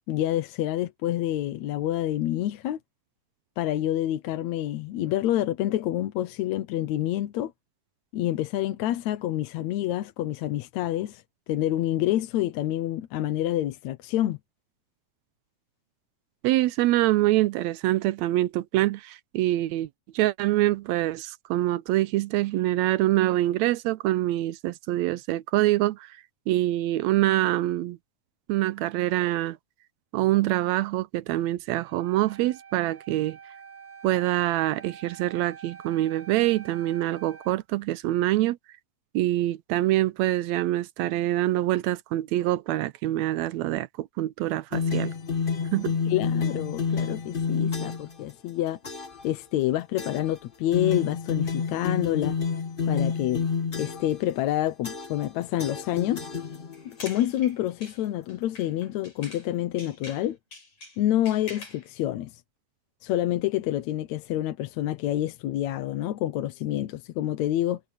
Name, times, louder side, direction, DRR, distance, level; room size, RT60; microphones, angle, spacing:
voice 1, 0.1-2.8 3.6-7.5 8.1-11.2 11.5-14.4 46.1-48.8 49.2-52.4 52.9-53.4 53.8-56.3 56.9-60.4 61.0-62.4 63.0-67.8, left 13 dB, 75° left, 2.1 m, -27 dB
voice 2, 16.4-19.9 20.1-26.1 26.5-28.0 28.5-29.6 30.1-33.4 34.0-38.6 39.1-45.1 45.7-46.0, right 16 dB, 80° right, 1.8 m, -25 dB
Wind instrument woodwind instrument, 31.7-37.6, right 6 dB, 25° right, 1.9 m, -47 dB
sound 1, 44.7-48.1 48.8-49.2 50.0-50.4 50.7-54.2 54.8-55.3 55.6-56.9, left 5 dB, 35° left, 0.8 m, -29 dB
sound 2, 56.7-59.5 59.8-61.9, left 3 dB, 50° left, 7.2 m, -45 dB
omnidirectional pair, 3.5 m